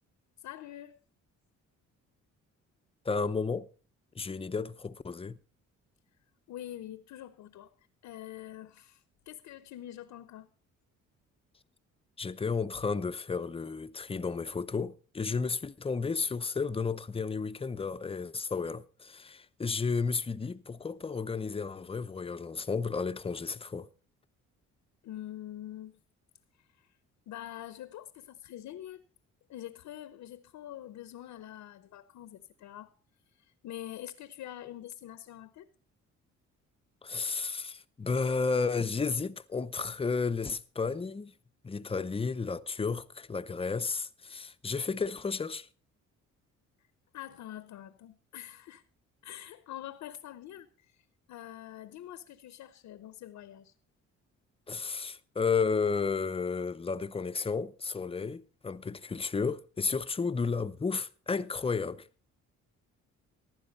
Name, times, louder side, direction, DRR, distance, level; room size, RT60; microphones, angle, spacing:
voice 1, 0.4-1.0 6.5-7.7 8.0-10.5 25.0-26.0 26.6-26.9 27.3-29.0 29.5-33.0 33.3-35.7 47.1-48.8 49.2-53.7, left 12 dB, 80° left, 0.9 m, -45 dB
voice 2, 3.0-3.7 4.2-5.4 12.2-23.9 37.0-41.3 41.6-45.7 54.7-62.1, left 4 dB, 20° left, 0.6 m, -32 dB
15.0 x 11.5 x 4.1 m
cardioid pair, 90°, 30 cm